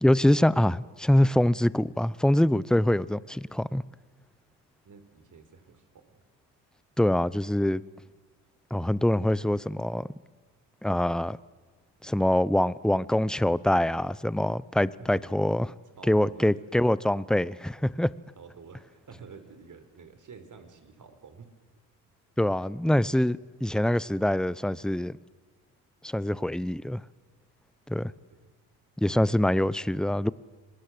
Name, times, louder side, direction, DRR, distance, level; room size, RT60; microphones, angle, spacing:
voice 1, 0.0-3.8 7.0-7.8 8.7-10.1 10.8-11.4 12.0-15.7 16.1-18.1 22.4-25.2 26.0-27.0 27.9-28.1 29.0-30.3, left 1 dB, ahead, 0.8 m, -24 dB
voice 2, 4.8-6.2 16.0-16.5 18.4-21.5 28.1-28.5, right 5 dB, 45° right, 4.4 m, -49 dB
27.5 x 21.0 x 7.8 m
supercardioid pair, 65°, 44 cm